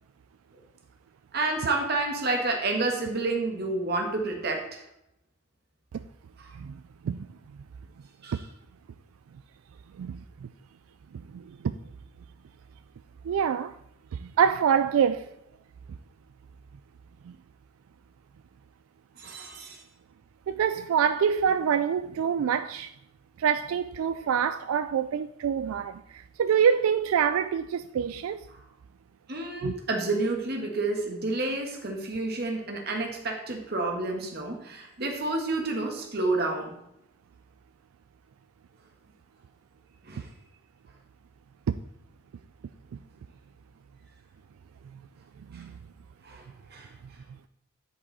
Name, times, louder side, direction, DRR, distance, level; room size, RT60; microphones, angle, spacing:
voice 1, 1.3-4.8 6.4-6.5 8.2-8.5 19.2-19.8 28.5-28.6 29.3-36.8 40.0-40.3 45.5-45.6 46.2-46.9, right 2 dB, 50° right, 1.5 m, -30 dB
voice 2, 11.3-11.8 13.2-13.8 14.1-15.3 20.5-22.9 23.4-28.5 29.6-29.7 41.7-41.8 45.5-45.7, right 7 dB, 85° right, 0.3 m, -26 dB
9.9 x 5.5 x 4.1 m
head